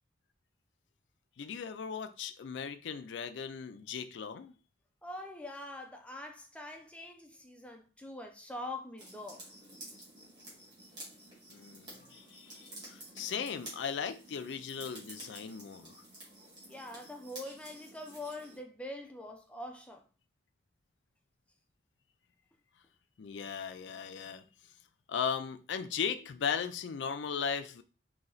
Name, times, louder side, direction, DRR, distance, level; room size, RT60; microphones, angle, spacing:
voice 1, 1.4-4.5 11.5-16.0 23.2-24.4 25.1-27.8, left 6 dB, 85° left, 0.4 m, -37 dB
voice 2, 5.0-9.4 16.7-20.0, left 1 dB, 5° left, 0.4 m, -44 dB
sound 1, 9.0-18.6, right 1 dB, 25° right, 1.7 m, -51 dB
4.2 x 2.8 x 3.9 m
head